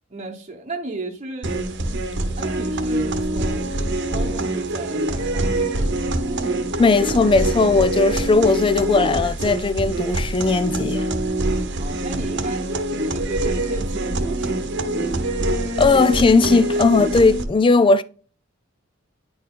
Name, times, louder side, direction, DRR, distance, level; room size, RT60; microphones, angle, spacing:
voice 1, 0.1-1.5 2.3-6.1 11.8-14.9, right 2 dB, 35° right, 1.0 m, -35 dB
sound 1, 1.4-17.4, right 1 dB, 60° right, 1.0 m, -24 dB
voice 2, 6.8-11.1 15.8-18.0, left 3 dB, 25° left, 0.4 m, -17 dB
9.8 x 4.3 x 3.8 m
head